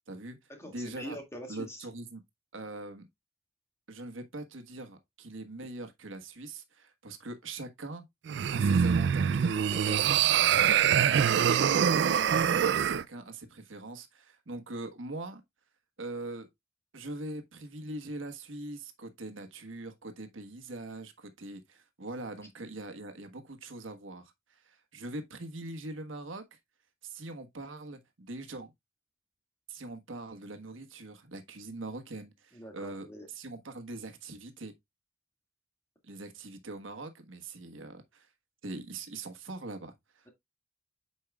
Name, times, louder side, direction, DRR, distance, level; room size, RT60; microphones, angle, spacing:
voice 1, 0.1-1.2 1.5-2.2 2.5-3.1 3.9-8.0 8.5-9.7 11.1-15.4 16.0-16.5 16.9-26.6 27.0-28.7 29.7-34.7 36.0-38.3 38.6-40.3, right 2 dB, 85° right, 1.3 m, -42 dB
voice 2, 0.6-1.9 9.7-10.4 10.9-12.0 32.5-33.3, equal, 15° left, 2.0 m, -44 dB
sound 1, 8.3-13.0, right 8 dB, 60° right, 0.3 m, -24 dB
8.5 x 5.5 x 2.3 m
head